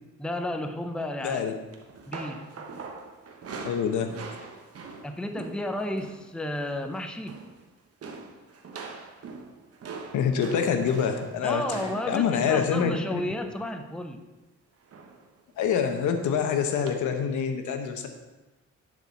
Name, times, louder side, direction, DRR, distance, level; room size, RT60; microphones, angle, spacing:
voice 1, 0.2-1.5 2.1-2.6 5.0-7.3 11.4-14.2, left 1 dB, 5° left, 6 dB, 0.6 m, -32 dB
voice 2, 1.2-1.5 3.6-4.1 10.1-11.8 12.1-13.2 15.6-18.1, left 7 dB, 80° left, 6 dB, 1.0 m, -26 dB
sound 1, 1.7-6.3 6.5-6.9 7.1-7.6 8.0-14.0 14.9-15.3 15.6-15.8 16.9-17.0, right 4 dB, 50° right, 1.2 m, -43 dB
10.5 x 4.9 x 4.1 m, 1.1 s
cardioid pair, 90°, 30 cm